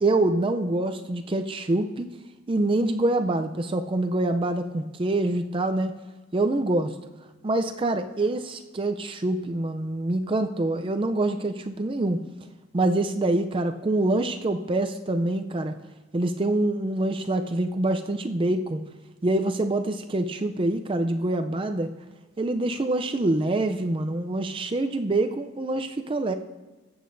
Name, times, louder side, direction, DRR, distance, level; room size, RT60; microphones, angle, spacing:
voice 1, 0.0-2.1 2.5-6.0 6.3-6.9 7.4-12.2 12.7-15.7 16.1-18.8 19.2-21.9 22.4-26.3, right 2 dB, 25° right, 7 dB, 0.4 m, -25 dB
20.0 x 8.4 x 2.6 m, 1.2 s
head